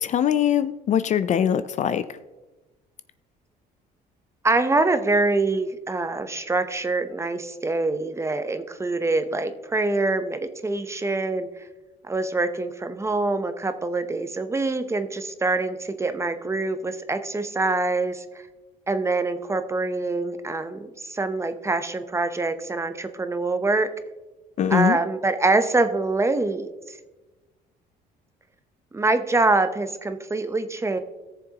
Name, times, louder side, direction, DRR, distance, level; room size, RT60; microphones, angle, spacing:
voice 1, 0.0-2.0 24.6-25.0, left 9 dB, 45° left, 13 dB, 0.4 m, -22 dB
voice 2, 4.4-11.5 12.0-18.2 18.9-23.9 24.7-27.0 28.9-31.0, right 3 dB, 15° right, 9 dB, 0.7 m, -25 dB
18.0 x 6.9 x 2.9 m, 1.1 s
cardioid pair, 110°, 17 cm